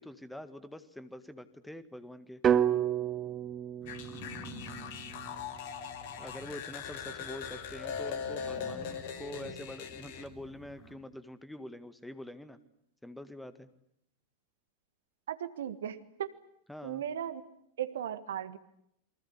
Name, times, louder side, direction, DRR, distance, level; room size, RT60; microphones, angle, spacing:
voice 1, 0.0-2.4 6.2-12.6 13.0-13.7 16.7-17.0, left 1 dB, 5° left, 13 dB, 1.8 m, -45 dB
sound 1, 2.4-6.5, right 9 dB, 25° right, 1.6 m, -32 dB
sound 2, 3.8-10.9, left 1 dB, 20° left, 5.8 m, -50 dB
sound 3, 3.9-10.3, left 7 dB, 50° left, 2.7 m, -40 dB
voice 2, 15.3-16.3 16.8-17.4 17.8-18.6, right 10 dB, 60° right, 13 dB, 1.8 m, -37 dB
28.5 x 24.0 x 8.4 m, 0.75 s
figure-of-eight pair, 90°, 0 cm